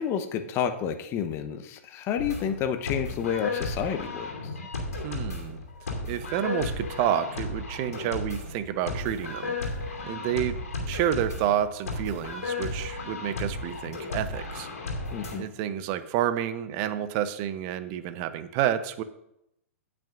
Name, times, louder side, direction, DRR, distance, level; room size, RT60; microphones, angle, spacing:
voice 1, 0.0-4.3 15.1-15.5, left 8 dB, 35° left, 8 dB, 0.9 m, -30 dB
sound 1, 2.2-15.4, left 2 dB, 80° left, 2.6 m, -34 dB
voice 2, 5.0-5.6 6.1-9.5 10.1-10.6 10.8-14.7 15.4-19.0, right 10 dB, 40° right, 12 dB, 0.8 m, -29 dB
17.5 x 6.0 x 2.6 m, 0.79 s
hypercardioid pair, 110°, 8 cm